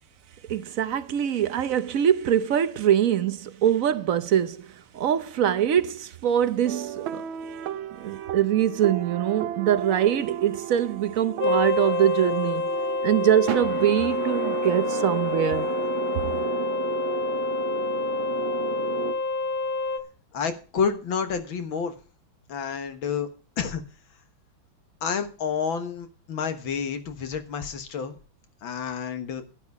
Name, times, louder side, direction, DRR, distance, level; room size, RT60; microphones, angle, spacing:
voice 1, 0.5-4.7 4.9-7.2 8.0-12.7 13.0-15.7, right 10 dB, 60° right, 0.9 m, -23 dB
sound 1, 6.6-19.1, right 10 dB, 90° right, 1.6 m, -34 dB
sound 2, 11.4-20.0, left 3 dB, 55° left, 1.4 m, -27 dB
voice 2, 20.3-21.9 22.5-23.3 23.6-23.8 25.0-28.2 28.6-29.4, left 6 dB, 85° left, 2.2 m, -29 dB
11.5 x 11.0 x 4.8 m
omnidirectional pair, 2.1 m